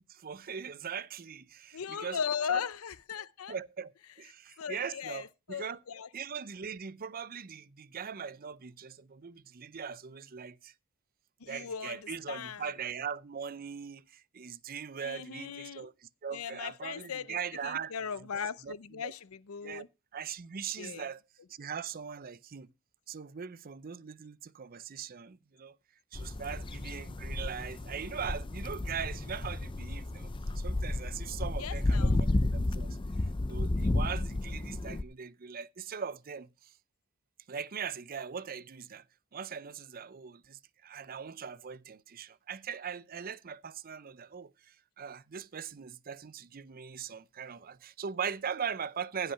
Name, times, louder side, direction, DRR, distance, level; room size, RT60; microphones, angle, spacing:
voice 1, 0.0-2.2 2.5-2.6 3.5-5.8 6.1-10.7 11.4-17.9 18.6-19.1 19.6-19.9 20.1-21.2 21.5-22.7 23.1-25.8 26.1-30.3 30.5-33.0 33.5-36.7 37.5-39.0 39.3-49.3, right 7 dB, 45° right, 0.6 m, -40 dB
voice 2, 1.7-3.5 4.6-6.1 11.4-12.7 15.0-15.9 16.3-17.4 17.6-19.9 20.8-21.1 31.6-32.2, left 7 dB, 85° left, 0.6 m, -38 dB
sound 1, 26.1-35.0, left 2 dB, 25° left, 0.5 m, -32 dB
15.5 x 5.6 x 5.6 m
head